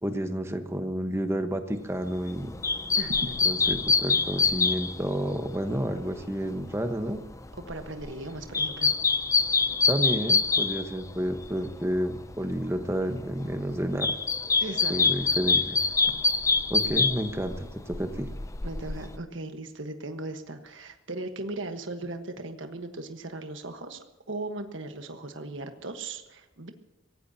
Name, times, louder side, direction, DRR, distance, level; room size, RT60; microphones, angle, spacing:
voice 1, 0.0-2.5 3.4-7.2 9.9-14.1 14.9-15.8 16.7-18.3, equal, 15° right, 6 dB, 1.2 m, -30 dB
sound 1, 2.1-11.7 12.0-12.9 13.3-19.2, left 4 dB, 15° left, 0.5 m, -26 dB
voice 2, 3.0-3.5 7.7-8.9 14.6-15.1 18.6-26.7, right 2 dB, 65° right, 6 dB, 1.4 m, -37 dB
24.5 x 17.5 x 2.9 m, 1.0 s
head